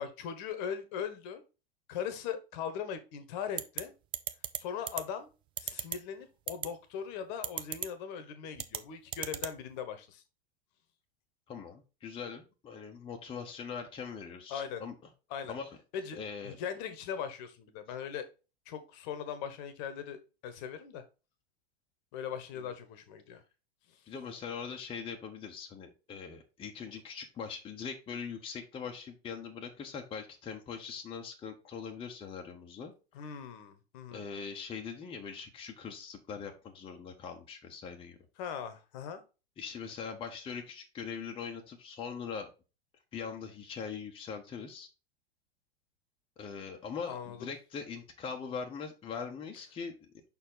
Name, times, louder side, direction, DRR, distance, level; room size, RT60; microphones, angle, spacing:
voice 1, 0.0-1.4 1.9-3.9 4.6-5.3 5.6-10.2 14.5-14.8 15.3-15.5 15.9-18.3 18.7-21.0 22.1-23.4 23.9-24.0 33.1-34.2 38.4-39.2 47.1-47.5, left 8 dB, 45° left, 10 dB, 1.1 m, -40 dB
sound 1, 3.6-3.8 4.1-4.6 4.9-5.0 5.6-6.0 6.5-6.7 7.4-7.9 8.6-8.8 9.1-9.5, right 11 dB, 15° right, 0.3 m, -34 dB
voice 2, 11.5-14.9 15.5-15.7 16.2-16.6 24.1-32.9 34.1-38.2 39.6-42.5 43.1-44.9 46.4-50.0, left 6 dB, 15° left, 2 dB, 0.9 m, -41 dB
5.8 x 4.4 x 3.8 m, 0.31 s
figure-of-eight pair, 95°, 31 cm